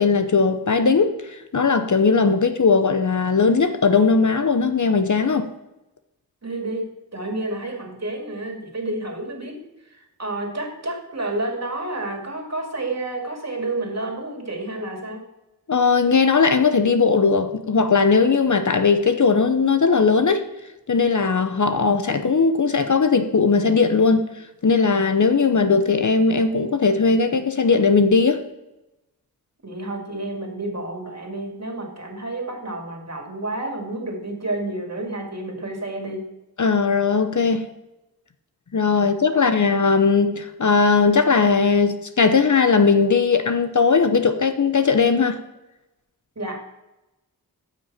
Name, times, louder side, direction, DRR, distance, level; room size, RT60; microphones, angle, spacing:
voice 1, 0.0-5.5 15.7-20.4 20.9-24.3 24.6-28.4 36.6-37.7 38.7-45.4, left 4 dB, 50° left, 0.8 m, -18 dB
voice 2, 6.4-6.9 7.1-9.6 9.9-15.2 29.6-36.3 46.4-46.6, right 2 dB, 45° right, 2.5 m, -30 dB
14.0 x 6.1 x 4.3 m
wide cardioid pair, 55°, 38 cm